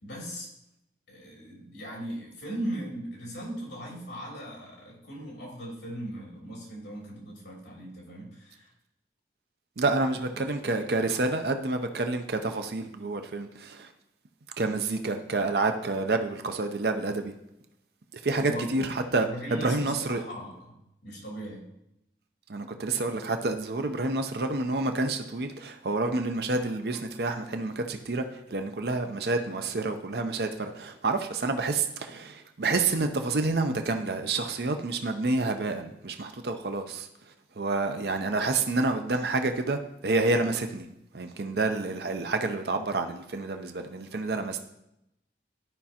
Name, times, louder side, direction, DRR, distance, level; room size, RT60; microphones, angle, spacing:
voice 1, 0.0-0.5 1.1-8.7 18.4-18.9 19.3-21.6, equal, 75° left, -3 dB, 2.9 m, -39 dB
voice 2, 9.8-13.9 14.6-17.3 18.2-20.2 22.5-37.1 37.6-40.9 41.1-44.6, right 3 dB, 60° right, 6 dB, 0.6 m, -28 dB
13.0 x 5.2 x 2.9 m, 0.83 s
head